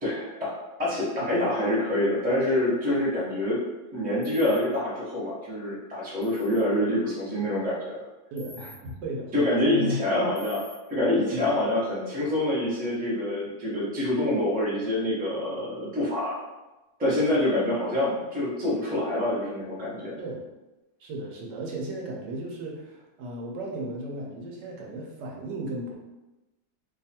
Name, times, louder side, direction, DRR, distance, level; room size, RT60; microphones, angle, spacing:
voice 1, 0.0-0.5 0.8-3.6 3.9-8.0 9.3-10.6 10.9-16.4 17.0-20.2, left 1 dB, 10° right, -7 dB, 0.6 m, -26 dB
sound 1, 4.2-4.6 6.2-6.6 8.4-8.8 10.4-10.7, left 2 dB, 50° left, 0.7 m, -47 dB
voice 2, 8.3-10.0 11.3-11.6 20.2-20.5 21.0-25.9, right 1 dB, 75° right, -1 dB, 1.4 m, -35 dB
3.0 x 2.4 x 4.2 m, 1.0 s
omnidirectional pair, 1.9 m